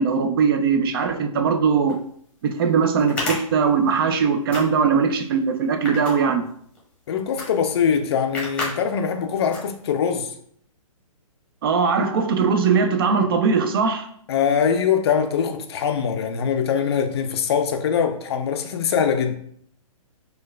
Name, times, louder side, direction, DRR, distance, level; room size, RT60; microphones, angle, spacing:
voice 1, 0.0-2.0 2.4-6.4 11.6-14.1, right 5 dB, 40° right, 0.4 m, -20 dB
sound 1, 1.9-2.0 3.0-4.2 4.5-5.0 5.6-6.8 7.4-7.5 7.8-7.9 8.3-8.7 9.1-9.2 9.5-10.1, left 2 dB, 5° left, 0.9 m, -30 dB
voice 2, 7.1-10.3 14.3-19.4, left 7 dB, 45° left, 0.4 m, -22 dB
4.4 x 2.2 x 2.3 m
figure-of-eight pair, 130°, 18 cm